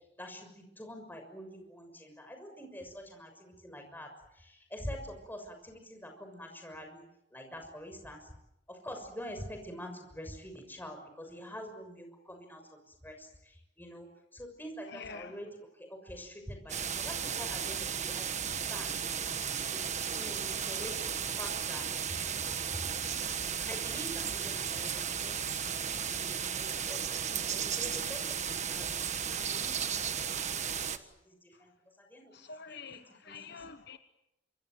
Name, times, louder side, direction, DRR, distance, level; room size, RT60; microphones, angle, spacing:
voice 1, 0.2-4.1 4.4-7.0 7.3-8.2 8.8-12.6 13.0-13.3 13.8-14.1 14.3-15.5 15.8-19.0 19.5-21.8 23.7-25.6 26.0-30.1 30.5-30.6 31.3-31.4 31.6-31.7 32.1-32.3 32.7-33.6, equal, 10° left, 6.5 m, -46 dB
voice 2, 14.9-15.4 32.3-34.0, left 5 dB, 60° left, 1.3 m, -46 dB
sound 1, 16.7-31.0, right 7 dB, 40° right, 1.4 m, -34 dB
26.5 x 25.5 x 7.8 m
head